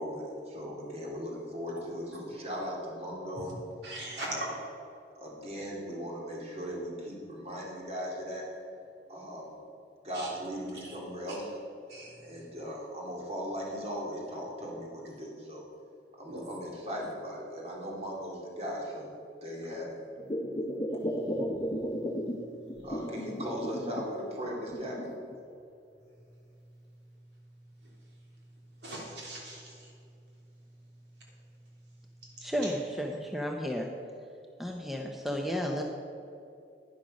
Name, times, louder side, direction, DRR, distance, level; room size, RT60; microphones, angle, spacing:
voice 1, 0.0-3.5 4.2-4.5 5.2-8.5 9.1-9.5 10.0-11.5 12.2-15.6 16.2-19.1 19.4-19.9 22.8-25.1, equal, 35° right, -3 dB, 2.5 m, -38 dB
voice 2, 3.8-4.5 10.1-10.3 10.8-11.0 11.3-11.4 11.9-12.5 16.3-16.5 21.0-21.2 22.8-22.9 27.8-27.9 28.8-29.9 32.6-32.7, right 1 dB, 70° right, -4 dB, 3.4 m, -41 dB
sound 1, 20.2-22.4 22.7-24.1 24.4-25.4 26.0-26.1, equal, 25° left, 0.9 m, -34 dB
voice 3, 32.4-33.9 34.6-35.8, equal, ahead, 1 dB, 0.7 m, -33 dB
11.0 x 10.5 x 5.3 m, 2.6 s
head